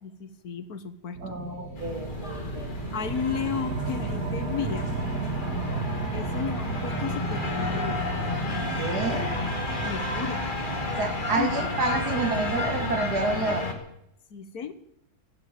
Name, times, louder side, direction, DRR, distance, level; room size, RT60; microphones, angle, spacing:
voice 1, 0.0-1.4 2.9-4.9 6.1-8.0 9.8-10.4 11.4-11.5 14.3-14.7, left 6 dB, 70° left, 12 dB, 1.7 m, -33 dB
sound 1, 1.1-13.7, right 3 dB, 70° right, 2.7 m, -34 dB
voice 2, 1.2-2.7 5.6-5.8 8.8-9.4 10.8-13.7, right 3 dB, 85° right, 5 dB, 3.3 m, -29 dB
sound 2, 1.7-13.7, left 3 dB, 30° left, 2.2 m, -32 dB
15.5 x 10.5 x 8.7 m, 0.78 s
omnidirectional pair, 1.6 m